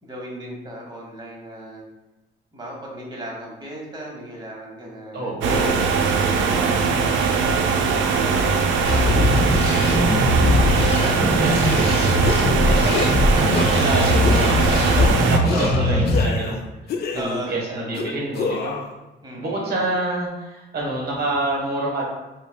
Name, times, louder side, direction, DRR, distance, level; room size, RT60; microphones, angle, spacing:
voice 1, 0.0-1.8 2.5-5.3 5.9-7.8 15.5-16.2 17.1-18.1 19.2-19.8, right 1 dB, 20° right, -2 dB, 1.1 m, -36 dB
voice 2, 5.1-5.8 10.6-16.6 17.1-18.8 19.4-22.0, right 2 dB, 55° right, -3 dB, 1.2 m, -28 dB
sound 1, 5.4-15.4, right 5 dB, 75° right, 0.5 m, -20 dB
sound 2, 8.9-16.2, left 1 dB, 30° left, 1.0 m, -20 dB
sound 3, 11.7-11.9 12.2-12.6 12.9-13.2 13.5-13.9 14.2-14.5 15.0-15.1 15.4-16.6 16.9-17.5 17.9-18.9, left 5 dB, 55° left, 0.4 m, -28 dB
5.1 x 2.2 x 2.3 m, 1.1 s
cardioid pair, 90°, 20 cm